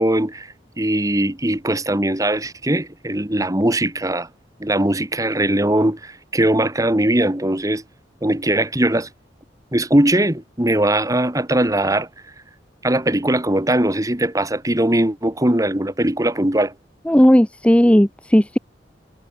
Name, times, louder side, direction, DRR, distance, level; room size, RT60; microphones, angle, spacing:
voice 1, 0.0-4.3 4.6-7.8 8.2-9.1 9.7-12.1 12.8-16.7, right 1 dB, 20° right, 2.0 m, -20 dB
voice 2, 17.1-18.6, equal, 5° left, 0.8 m, -14 dB
head